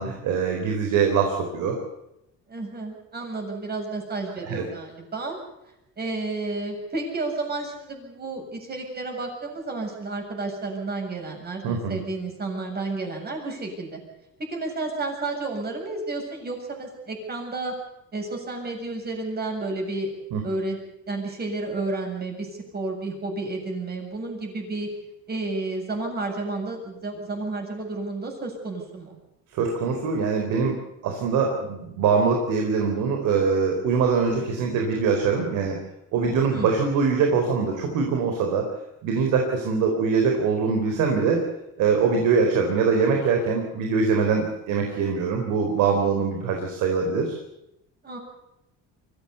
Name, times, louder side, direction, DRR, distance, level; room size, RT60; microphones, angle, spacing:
voice 1, 0.0-1.8 4.4-4.7 11.6-12.0 20.3-20.4 29.5-35.8 36.1-38.7 39.0-41.4 41.8-47.4, right 5 dB, 80° right, 3 dB, 4.2 m, -23 dB
voice 2, 2.5-5.4 6.0-14.0 14.4-17.7 18.1-20.1 20.4-20.8 21.1-22.5 22.7-24.9 25.3-29.2 36.5-36.7 48.0-48.2, right 3 dB, 30° right, 1 dB, 7.8 m, -31 dB
24.0 x 16.0 x 8.3 m, 0.87 s
cardioid pair, 125°, 30 cm